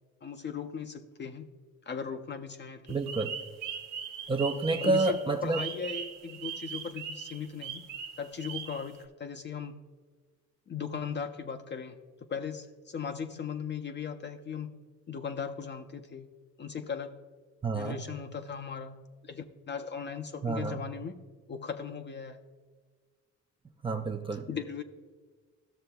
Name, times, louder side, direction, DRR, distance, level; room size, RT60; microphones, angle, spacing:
voice 1, 0.2-1.5 1.9-3.0 4.8-7.9 8.2-9.8 10.7-14.8 15.1-16.3 16.6-17.3 17.7-21.2 21.5-22.4 24.5-24.8, left 6 dB, 35° left, 5 dB, 0.5 m, -38 dB
voice 2, 2.9-3.3 4.3-5.6 17.6-18.0 20.4-20.8 23.8-24.5, right 3 dB, 15° right, 4 dB, 0.5 m, -29 dB
sound 1, 2.9-9.0, right 7 dB, 85° right, 0.9 m, -40 dB
14.0 x 6.6 x 2.3 m, 1.5 s
cardioid pair, 90°, 30 cm